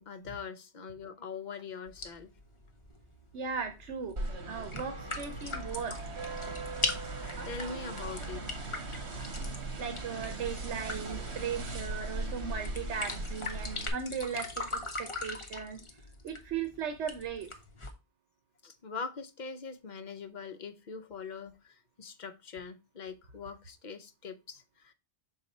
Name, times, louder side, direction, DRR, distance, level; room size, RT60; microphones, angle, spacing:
voice 1, 0.0-2.3 7.0-8.6 18.6-24.9, left 5 dB, 50° left, 0.7 m, -43 dB
sound 1, 1.9-17.9, left 2 dB, 30° left, 1.0 m, -41 dB
voice 2, 3.3-4.1 4.5-6.0 9.8-15.8 16.2-17.5, right 6 dB, 85° right, 1.1 m, -37 dB
sound 2, 4.2-13.9, right 2 dB, 70° right, 1.6 m, -39 dB
6.4 x 4.1 x 4.1 m
omnidirectional pair, 1.1 m